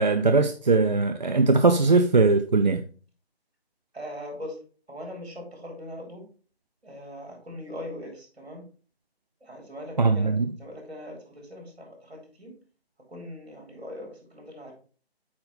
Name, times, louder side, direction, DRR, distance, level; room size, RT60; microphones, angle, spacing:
voice 1, 0.0-2.8 10.0-10.5, right 3 dB, 45° right, 7 dB, 0.5 m, -20 dB
voice 2, 3.9-4.6 4.9-6.3 6.8-8.7 9.4-12.5 13.1-14.7, left 1 dB, 70° right, 1 dB, 3.9 m, -40 dB
8.6 x 4.2 x 4.1 m, 0.40 s
figure-of-eight pair, 155°, 32 cm